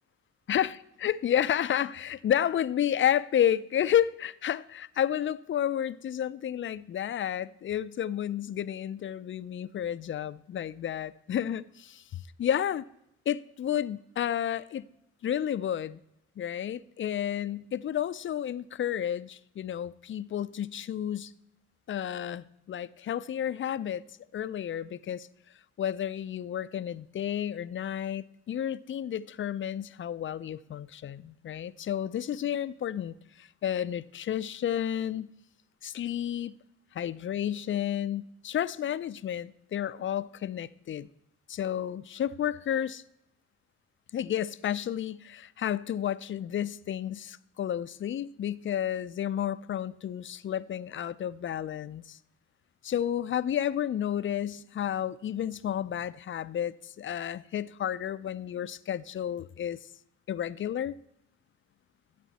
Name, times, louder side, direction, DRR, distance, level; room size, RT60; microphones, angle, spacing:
voice 1, 0.5-12.8 13.3-14.9 15.2-16.0 16.4-21.3 21.9-24.0 24.3-25.3 25.8-35.3 35.8-36.6 36.9-41.1 41.5-43.0 44.1-52.2 52.8-59.8 60.3-61.0, left 10 dB, 40° left, 0.4 m, -31 dB
13.0 x 8.2 x 4.1 m
cardioid pair, 90°, 30 cm